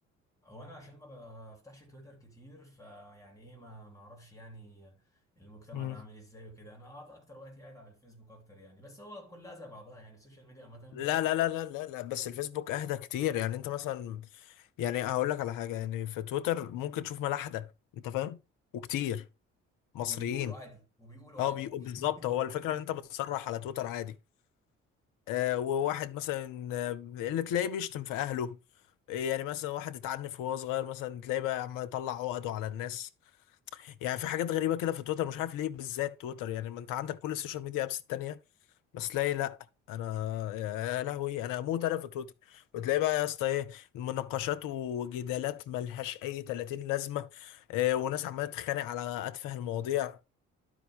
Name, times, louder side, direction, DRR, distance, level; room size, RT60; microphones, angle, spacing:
voice 1, 0.4-11.1 20.0-22.9, equal, 10° left, 3.4 m, -50 dB
voice 2, 10.9-18.4 18.7-19.3 19.9-20.5 21.4-24.2 25.3-28.6 29.1-33.1 33.7-38.4 38.9-39.6 39.9-50.2, left 12 dB, 60° left, 0.7 m, -33 dB
11.5 x 5.1 x 3.5 m
figure-of-eight pair, 45°, 37 cm